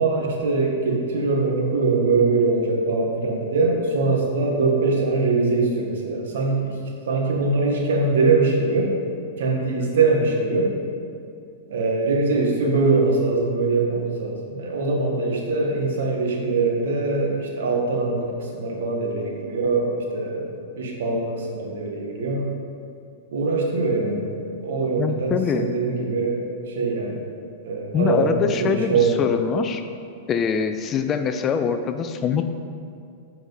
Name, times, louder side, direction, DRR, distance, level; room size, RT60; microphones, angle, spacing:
voice 1, 0.0-6.8 7.1-8.9 9.4-10.7 11.7-22.5 23.3-27.2 27.6-29.2, right 3 dB, 80° right, -1 dB, 1.4 m, -22 dB
voice 2, 25.0-25.7 27.9-29.8 30.3-32.5, left 6 dB, 25° left, 8 dB, 0.4 m, -24 dB
7.9 x 4.8 x 3.9 m, 2.4 s
hypercardioid pair, 140°, 0 cm